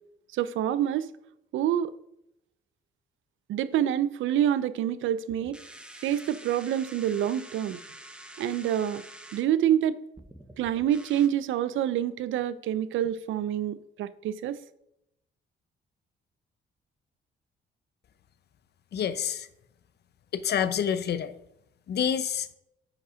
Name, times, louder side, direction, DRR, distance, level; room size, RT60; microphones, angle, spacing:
voice 1, 0.3-1.1 1.5-1.9 3.5-5.6 6.0-7.8 8.4-9.0 9.3-10.0 10.6-14.6, right 10 dB, 80° right, 0.5 m, -27 dB
sound 1, 5.3-9.4 10.2-11.3, right 1 dB, 5° right, 1.1 m, -47 dB
voice 2, 18.9-19.5 20.3-21.3 21.9-22.5, left 8 dB, 55° left, 0.7 m, -27 dB
10.0 x 5.4 x 4.9 m
cardioid pair, 90°, 20 cm